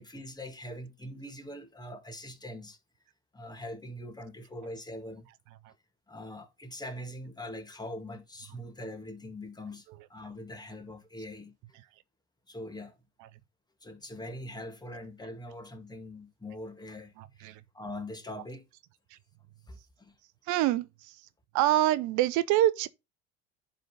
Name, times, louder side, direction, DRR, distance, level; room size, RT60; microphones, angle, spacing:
voice 1, 0.0-2.8 3.3-5.3 6.1-11.8 12.5-13.0 13.8-18.7 19.7-20.2, left 1 dB, 10° left, 2.3 m, -43 dB
voice 2, 17.2-17.6 19.1-19.2 20.5-21.2 21.5-22.9, right 14 dB, 60° right, 0.8 m, -26 dB
10.5 x 4.1 x 5.1 m
hypercardioid pair, 75°, 34 cm